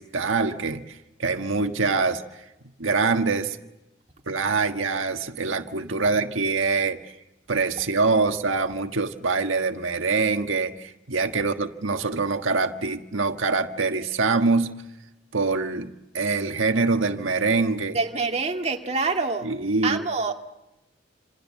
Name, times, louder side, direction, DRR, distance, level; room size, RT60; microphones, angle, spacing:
voice 1, 0.0-2.2 2.8-3.6 4.3-7.1 7.5-14.7 15.3-18.0 19.4-20.0, right 4 dB, 85° right, 5 dB, 1.5 m, -24 dB
voice 2, 17.9-19.5 19.8-20.3, right 4 dB, 35° right, 2 dB, 2.2 m, -26 dB
28.5 x 27.0 x 7.5 m, 0.93 s
head